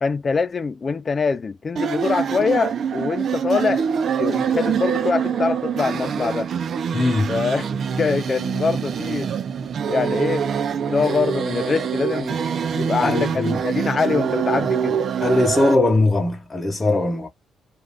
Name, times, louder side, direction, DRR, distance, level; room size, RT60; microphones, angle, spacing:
voice 1, 0.0-3.9 4.2-6.5 7.3-7.7 8.0-9.3 9.8-10.5 10.9-12.4 12.8-15.0, left 5 dB, 35° left, 0.5 m, -23 dB
sound 1, 1.8-15.8, right 7 dB, 55° right, 0.5 m, -25 dB
voice 2, 6.9-7.3 13.0-13.6 15.2-17.3, left 2 dB, 20° left, 0.9 m, -20 dB
2.5 x 2.3 x 3.4 m
cardioid pair, 90°, 0 cm